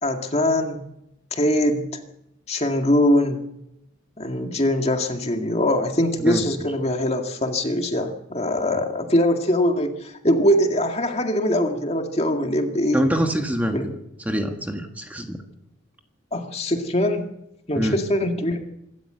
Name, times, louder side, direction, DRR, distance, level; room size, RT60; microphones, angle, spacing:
voice 1, 0.0-0.9 1.3-1.9 2.5-3.4 4.2-13.0 13.7-13.9 16.3-17.3 17.7-18.6, left 1 dB, 30° left, 4 dB, 2.1 m, -22 dB
voice 2, 12.9-13.9 14.2-15.4 17.7-18.0, equal, 10° right, 4 dB, 1.6 m, -25 dB
26.0 x 13.0 x 8.0 m, 0.84 s
head